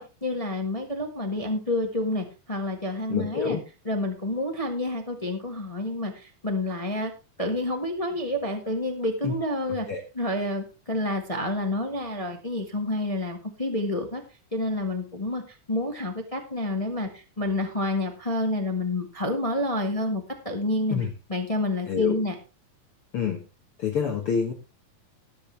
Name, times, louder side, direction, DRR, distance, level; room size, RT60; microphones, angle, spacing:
voice 1, 0.0-3.6 3.8-7.1 7.4-9.9 10.1-14.2 14.5-21.0 21.3-22.3, left 1 dB, 25° left, 4 dB, 0.7 m, -29 dB
voice 2, 3.1-3.6 9.2-9.3 9.9-10.0 20.9-21.1 21.9-22.2 23.1-23.4 23.8-24.5, left 7 dB, 55° left, 3 dB, 1.9 m, -26 dB
19.0 x 8.0 x 3.3 m, 0.30 s
omnidirectional pair, 3.7 m